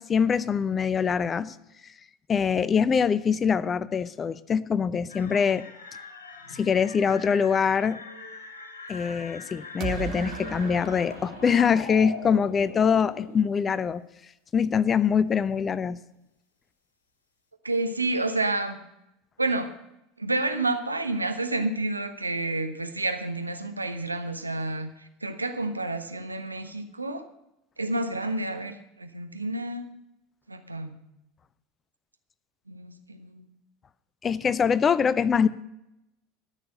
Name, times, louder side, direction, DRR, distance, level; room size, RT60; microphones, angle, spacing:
voice 1, 0.0-1.5 2.3-5.6 6.5-8.0 8.9-14.0 14.5-16.0 34.2-35.5, left 6 dB, 25° left, 17 dB, 0.5 m, -24 dB
sound 1, 5.1-13.4, left 3 dB, 75° left, 1.9 m, -42 dB
sound 2, 9.8-12.7, right 11 dB, 40° right, 0.6 m, -38 dB
voice 2, 17.6-18.8 19.4-19.7 20.2-27.2 27.8-29.9 30.5-31.0 32.7-33.5, right 2 dB, 85° right, 7 dB, 1.0 m, -29 dB
13.0 x 6.6 x 7.6 m, 0.86 s
figure-of-eight pair, 75°, 0 cm